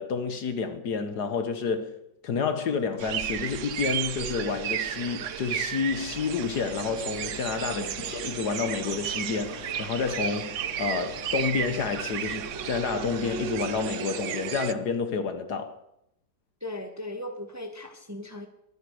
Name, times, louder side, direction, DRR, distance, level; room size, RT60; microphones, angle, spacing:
voice 1, 0.0-1.9 2.2-15.8, left 5 dB, 65° left, 1.7 m, -29 dB
sound 1, 3.0-14.7, right 10 dB, 65° right, 0.8 m, -33 dB
sound 2, 5.9-14.0, left 6 dB, 45° left, 1.0 m, -45 dB
voice 2, 7.6-8.0 16.6-18.5, left 1 dB, 10° right, 1.3 m, -38 dB
22.5 x 10.5 x 4.9 m
omnidirectional pair, 2.0 m